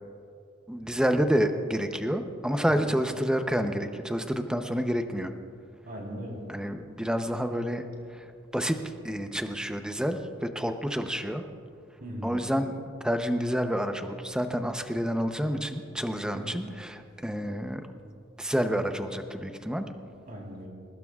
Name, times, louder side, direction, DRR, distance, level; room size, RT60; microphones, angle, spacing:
voice 1, 0.7-5.3 6.5-11.4 12.2-17.9 18.4-19.8, equal, 5° right, 6 dB, 0.7 m, -29 dB
voice 2, 5.9-6.4 12.0-12.3 16.3-16.6 20.3-20.7, equal, 45° right, -1 dB, 3.7 m, -39 dB
22.5 x 19.5 x 2.4 m, 2.4 s
head